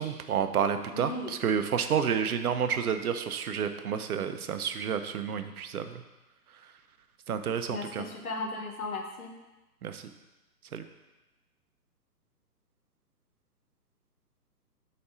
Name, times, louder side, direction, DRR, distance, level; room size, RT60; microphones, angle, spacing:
voice 1, 0.0-6.0 7.3-8.0 9.8-10.0 10.7-10.8, right 7 dB, 60° right, 8 dB, 0.7 m, -30 dB
voice 2, 0.9-1.3 7.7-9.3, left 2 dB, 60° left, 2 dB, 1.3 m, -36 dB
4.9 x 4.3 x 5.5 m, 1.1 s
hypercardioid pair, 140°, 49 cm